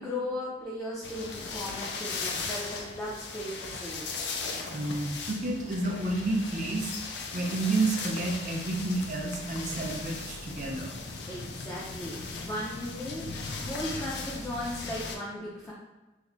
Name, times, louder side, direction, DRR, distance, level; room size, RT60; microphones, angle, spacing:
voice 1, 0.0-4.1 11.3-15.7, left 1 dB, 15° left, -6 dB, 0.4 m, -37 dB
sound 1, 1.0-15.2, left 4 dB, 75° left, 0.4 m, -38 dB
voice 2, 4.7-6.9 7.3-10.9, right 2 dB, 45° right, 0 dB, 0.5 m, -30 dB
3.2 x 2.0 x 3.7 m, 1.1 s
head